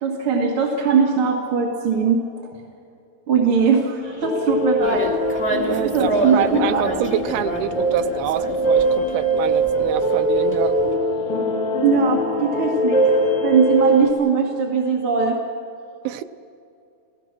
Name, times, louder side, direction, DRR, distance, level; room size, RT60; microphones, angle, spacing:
voice 1, 0.0-2.2 3.3-5.1 5.6-6.8 11.8-13.1 13.4-15.4, right 5 dB, 45° right, 2.1 m, -20 dB
sound 1, 4.0-14.1, right 1 dB, 50° left, 3.6 m, -22 dB
sound 2, 4.8-10.9, right 1 dB, 5° left, 0.9 m, -29 dB
voice 2, 5.7-10.8 16.0-16.2, right 12 dB, 80° right, 2.3 m, -26 dB
29.5 x 17.0 x 6.1 m
omnidirectional pair, 4.7 m